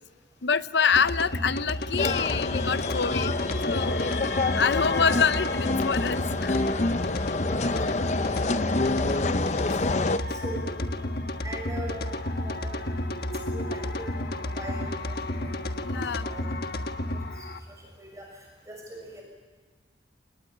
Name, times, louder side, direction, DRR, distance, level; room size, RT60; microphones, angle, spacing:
voice 1, 0.4-3.4 3.6-4.3 4.6-6.6 15.8-16.3, left 6 dB, 75° left, 14 dB, 0.8 m, -26 dB
sound 1, 0.9-17.6, left 1 dB, 55° left, 1.5 m, -31 dB
sound 2, 2.0-10.2, left 3 dB, 40° left, 0.7 m, -28 dB
voice 2, 7.5-8.2 8.5-9.3 9.8-10.7 11.4-12.8 13.5-16.4 17.1-19.2, right 1 dB, 15° right, 0 dB, 6.3 m, -41 dB
28.0 x 19.5 x 8.7 m, 1.5 s
head